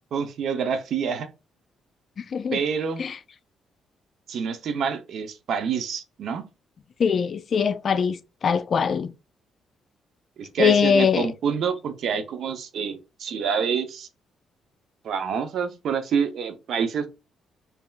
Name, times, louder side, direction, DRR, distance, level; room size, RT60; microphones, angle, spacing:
voice 1, 0.1-1.3 2.5-3.0 4.3-6.4 10.4-14.1 15.0-17.1, right 6 dB, 65° right, 0.7 m, -27 dB
voice 2, 7.0-9.1 10.6-11.3, left 6 dB, 50° left, 0.3 m, -22 dB
5.5 x 2.8 x 2.3 m
cardioid pair, 90°, 0 cm